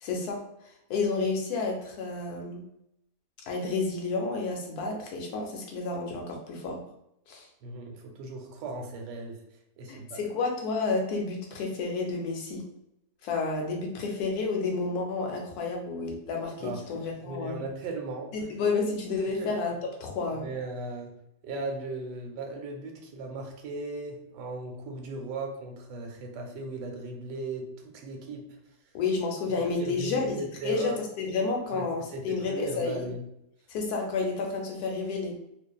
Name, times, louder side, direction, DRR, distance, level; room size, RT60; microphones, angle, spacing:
voice 1, 0.0-2.6 3.4-6.8 7.3-7.5 9.9-12.6 13.2-17.6 18.3-20.5 28.9-30.4 30.6-33.1 33.7-35.4, left 4 dB, 70° left, 0 dB, 1.0 m, -30 dB
voice 2, 7.6-9.4 9.8-10.2 16.6-16.8 17.2-18.4 19.4-19.6 20.3-21.1 21.4-28.6 29.6-31.0 31.7-33.2, right 2 dB, 90° right, 3 dB, 1.2 m, -37 dB
2.5 x 2.4 x 2.2 m, 0.79 s
omnidirectional pair, 1.8 m